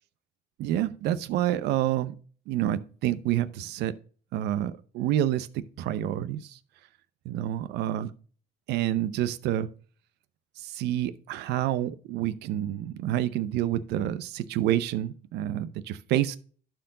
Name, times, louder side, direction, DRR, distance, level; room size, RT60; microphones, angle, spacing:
voice 1, 0.6-2.2 2.5-4.0 4.3-6.6 7.2-8.1 8.7-9.7 10.6-16.4, right 12 dB, 80° right, 0.7 m, -28 dB
11.5 x 4.6 x 3.8 m
cardioid pair, 110°, 17 cm